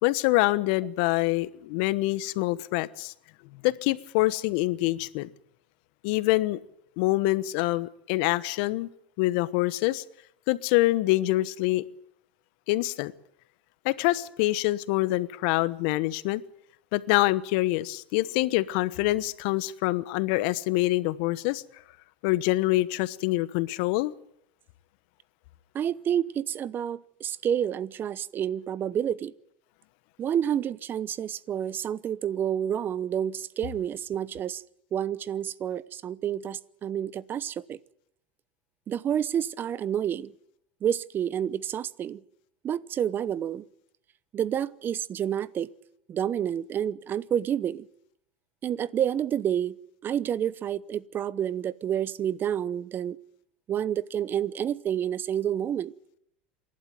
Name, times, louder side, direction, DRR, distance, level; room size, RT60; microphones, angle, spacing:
voice 1, 0.0-3.1 3.6-5.3 6.0-6.6 7.0-8.9 9.2-10.0 10.5-11.8 12.7-13.1 13.8-16.4 16.9-21.6 22.2-24.1, left 19 dB, 65° left, 1.1 m, -25 dB
voice 2, 25.7-29.3 30.2-34.6 34.9-37.8 38.9-40.3 40.8-42.2 42.6-43.6 44.3-45.7 46.1-47.9 48.6-49.7 50.0-53.2 53.7-55.9, right 9 dB, 35° right, 0.9 m, -29 dB
27.0 x 12.0 x 9.2 m
hypercardioid pair, 95°, 6 cm